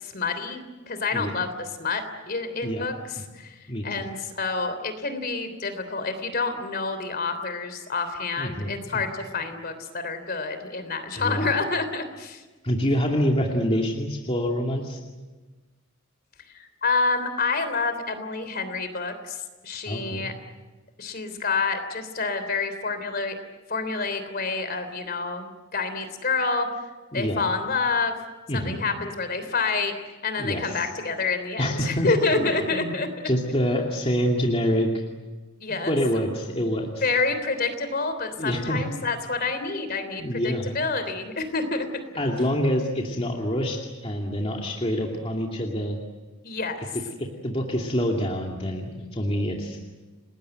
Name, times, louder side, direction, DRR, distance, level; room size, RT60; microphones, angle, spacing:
voice 1, 0.0-3.6 3.8-12.4 16.5-19.4 19.6-20.3 21.0-23.3 23.7-26.7 27.1-28.2 28.5-29.9 30.2-33.1 35.6-35.9 37.0-41.9 46.4-46.9, left 4 dB, 50° left, 9 dB, 3.3 m, -28 dB
voice 2, 3.7-4.1 8.4-9.0 11.2-11.5 12.6-15.0 19.9-20.3 27.1-27.4 28.5-28.8 30.4-30.7 31.6-32.9 33.2-34.9 35.9-37.0 38.4-38.8 40.2-40.7 42.2-46.0 47.4-49.8, equal, 30° left, 0 dB, 2.5 m, -26 dB
30.0 x 20.0 x 7.9 m, 1.2 s
head